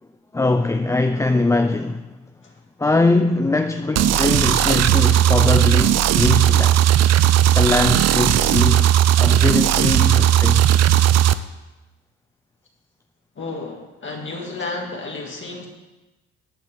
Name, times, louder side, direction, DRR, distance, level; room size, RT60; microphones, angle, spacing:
voice 1, 0.3-2.1 2.8-6.9 7.5-10.7, left 2 dB, 10° left, 0.4 m, -21 dB
sound 1, 4.0-11.3, right 11 dB, 60° right, 0.5 m, -16 dB
voice 2, 13.4-15.7, left 3 dB, 40° left, 1.9 m, -32 dB
14.0 x 8.0 x 3.6 m
cardioid pair, 90°, 30 cm